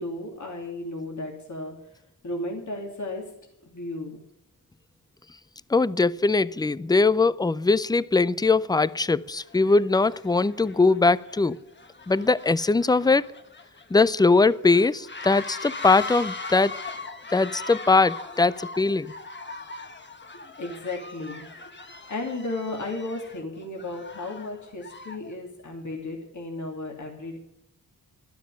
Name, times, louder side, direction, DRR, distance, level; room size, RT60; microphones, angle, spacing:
voice 1, 0.0-1.7 2.2-3.2 3.6-4.2 20.6-21.5 22.1-27.4, left 2 dB, 55° left, 3.1 m, -34 dB
voice 2, 5.7-11.6 12.1-13.3 13.9-16.8 17.3-19.1, left 3 dB, 10° left, 0.4 m, -21 dB
sound 1, 8.8-9.0 9.3-25.3, left 3 dB, 30° left, 1.5 m, -40 dB
12.5 x 12.5 x 6.9 m
wide cardioid pair, 110°, 35 cm